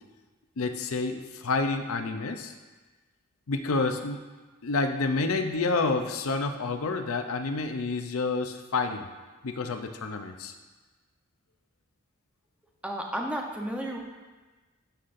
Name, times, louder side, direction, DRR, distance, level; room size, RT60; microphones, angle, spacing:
voice 1, 0.6-2.5 3.5-4.2 4.6-9.1 9.4-10.5, left 3 dB, 85° left, 7 dB, 0.6 m, -29 dB
voice 2, 12.8-14.0, right 1 dB, 5° right, 0 dB, 0.8 m, -32 dB
13.0 x 5.7 x 2.6 m, 1.3 s
head